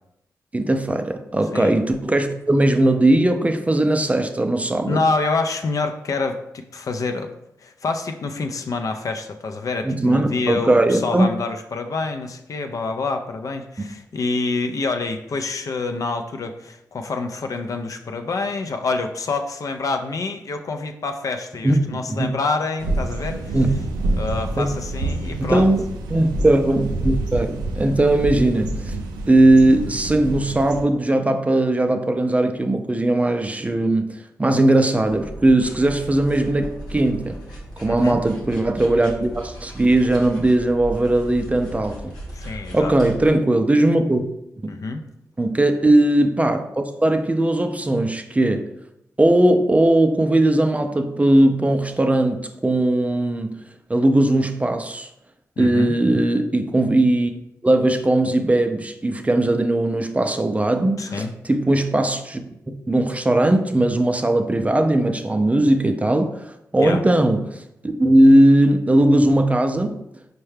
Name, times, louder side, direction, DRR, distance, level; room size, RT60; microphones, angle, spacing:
voice 1, 0.5-5.0 9.8-11.3 13.8-13.9 21.6-22.3 23.5-23.7 24.6-24.7 25.4-25.8 26.1-29.0 29.3-37.4 37.8-42.1 42.7-44.2 45.4-48.7 49.2-53.5 53.9-55.1 55.6-57.3 57.6-70.0, right 1 dB, 20° right, 0.4 m, -19 dB
voice 2, 4.8-7.3 7.6-23.6 24.1-25.7 37.9-38.2 42.3-42.9 44.7-45.0 55.6-55.9 61.0-61.3 66.8-67.0, left 3 dB, 55° left, 0.4 m, -27 dB
sound 1, 22.8-30.8, right 2 dB, 90° right, 0.4 m, -27 dB
sound 2, 35.0-43.3, right 1 dB, 85° left, 0.7 m, -37 dB
4.5 x 2.2 x 3.2 m
supercardioid pair, 45°, 7 cm